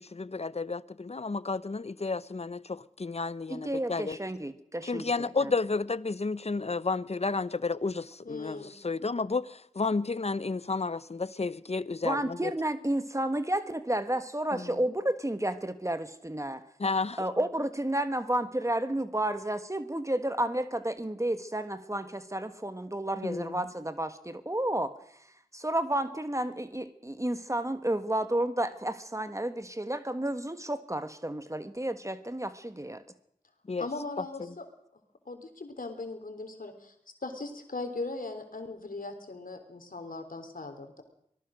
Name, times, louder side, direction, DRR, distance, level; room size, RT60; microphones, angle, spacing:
voice 1, 0.0-4.2 4.8-12.5 16.8-17.2 23.2-23.5 33.7-33.9, left 4 dB, 50° left, 0.8 m, -31 dB
voice 2, 3.5-5.5 12.0-16.6 17.2-24.9 25.5-33.0, right 1 dB, 20° right, 1.5 m, -31 dB
voice 3, 8.2-8.8 33.8-34.7 35.3-36.9 37.2-41.0, left 3 dB, 75° left, 3.5 m, -39 dB
25.0 x 18.5 x 6.4 m
wide cardioid pair, 55°, 14 cm